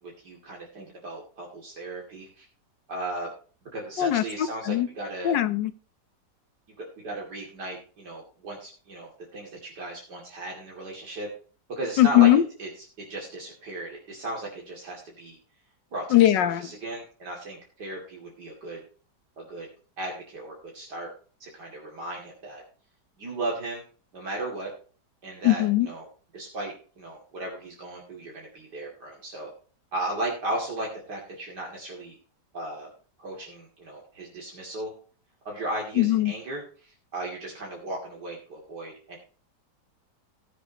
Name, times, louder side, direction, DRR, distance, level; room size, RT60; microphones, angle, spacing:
voice 1, 0.0-2.5 2.9-3.3 3.7-5.3 6.8-11.3 11.7-12.3 12.6-12.7 13.0-15.4 15.9-18.8 19.4-19.7 20.0-21.1 21.4-22.6 23.2-23.8 24.1-24.7 25.2-26.0 26.3-29.5 29.9-32.2 32.5-32.9 33.2-34.9 35.4-39.2, right 1 dB, 70° right, -2 dB, 3.1 m, -36 dB
voice 2, 4.0-4.9 5.2-5.7 12.0-12.4 16.1-16.7 25.4-25.9 36.0-36.3, left 13 dB, 85° left, 12 dB, 1.6 m, -20 dB
19.0 x 7.6 x 2.9 m, 0.40 s
omnidirectional pair, 1.9 m